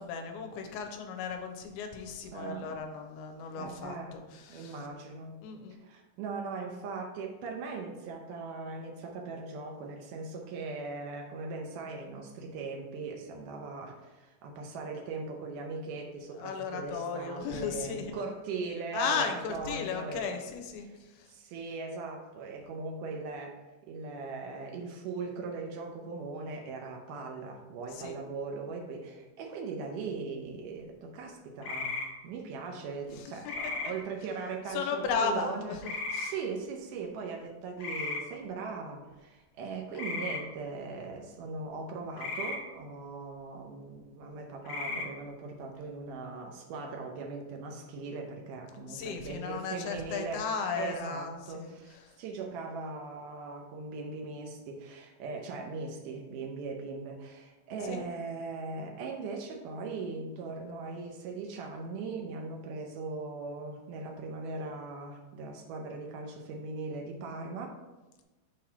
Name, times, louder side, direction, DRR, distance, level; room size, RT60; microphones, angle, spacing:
voice 1, 0.0-4.8 5.4-5.8 16.4-18.2 18.9-21.3 27.9-28.2 33.1-33.9 34.7-36.3 48.9-51.7 52.0-52.2 57.8-58.0, left 5 dB, 85° left, 5 dB, 2.5 m, -35 dB
voice 2, 2.3-2.8 3.6-4.2 4.5-5.4 5.8-20.3 20.8-21.0 21.3-35.8 36.1-50.5 50.7-67.8, right 4 dB, 90° right, 1 dB, 1.8 m, -39 dB
sound 1, 31.6-32.1 33.4-33.9 35.8-36.3 37.8-38.2 39.9-40.4 42.2-42.6 44.6-45.1, left 3 dB, 65° left, 2.7 m, -35 dB
6.6 x 2.8 x 5.6 m, 1.1 s
omnidirectional pair, 4.5 m